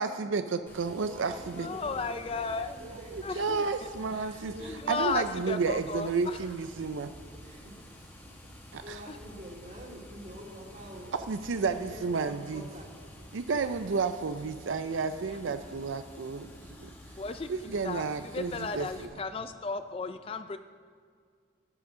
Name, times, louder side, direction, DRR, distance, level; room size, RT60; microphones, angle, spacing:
voice 1, 0.0-1.7 2.8-4.5 4.9-7.1 8.7-9.0 11.1-12.6 13.3-16.9 17.5-19.1, right 4 dB, 80° right, 10 dB, 0.5 m, -31 dB
Water, 0.7-19.0, equal, 10° left, 1.4 m, -50 dB
voice 2, 1.0-3.6 4.4-5.1 7.3-7.7 8.3-8.4 8.8-11.2 11.7-12.9 15.4-15.6, equal, 40° right, -2 dB, 2.4 m, -47 dB
voice 3, 1.6-2.8 3.2-3.6 4.7-6.4 17.2-17.5 17.8-18.0 18.3-20.6, left 4 dB, 30° left, 10 dB, 0.3 m, -34 dB
11.5 x 8.9 x 6.1 m, 2.1 s
head